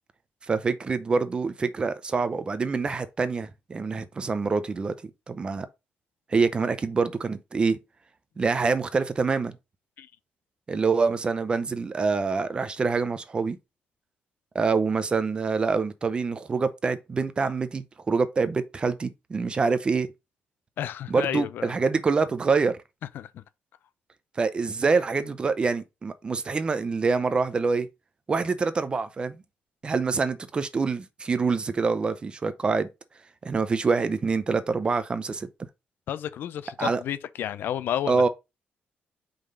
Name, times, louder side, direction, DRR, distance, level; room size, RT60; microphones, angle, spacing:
voice 1, 0.5-4.9 5.3-5.7 6.3-7.8 8.4-9.6 10.7-13.6 14.5-20.1 21.1-22.8 24.4-27.9 28.3-29.4 29.8-32.9 33.4-35.5 36.8-37.0 38.1-38.3, right 4 dB, 25° right, 0.6 m, -25 dB
voice 2, 20.8-21.7 23.1-23.4 36.1-38.3, left 10 dB, 75° left, 0.5 m, -31 dB
5.1 x 3.9 x 5.4 m
cardioid pair, 150°, 4 cm